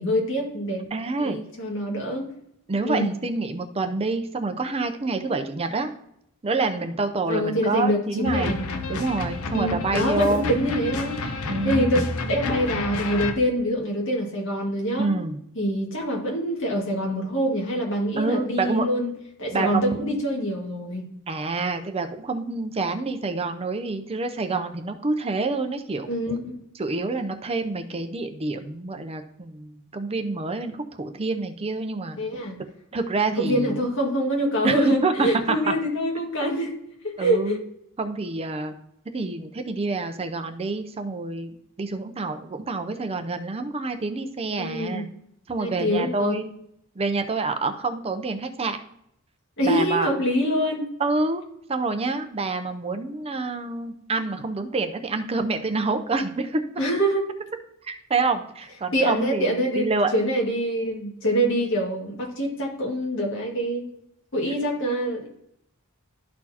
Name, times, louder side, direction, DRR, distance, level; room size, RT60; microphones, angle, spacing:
voice 1, 0.0-0.8 1.2-2.3 2.8-3.1 7.3-8.6 9.5-11.2 11.6-12.0 12.3-15.1 15.6-19.1 19.4-21.1 26.1-26.6 32.2-32.6 33.4-36.7 37.0-37.6 44.6-45.1 45.6-46.4 49.6-50.8 56.8-57.3 58.9-63.9 64.3-65.3, equal, 60° left, -1 dB, 2.1 m, -25 dB
voice 2, 0.9-1.4 2.7-5.9 6.4-8.6 8.9-10.5 11.5-11.9 15.0-15.4 18.2-18.9 19.5-20.2 21.3-26.1 26.8-32.2 32.6-33.8 34.6-35.7 37.2-37.6 38.0-38.7 39.1-41.5 41.8-45.1 45.5-46.5 47.0-48.8 49.6-50.1 51.0-51.4 51.7-56.6 57.8-60.1, right 3 dB, 25° right, 7 dB, 0.5 m, -27 dB
sound 1, 8.2-13.3, left 3 dB, 80° left, 0.8 m, -30 dB
12.5 x 4.2 x 2.8 m, 0.75 s
head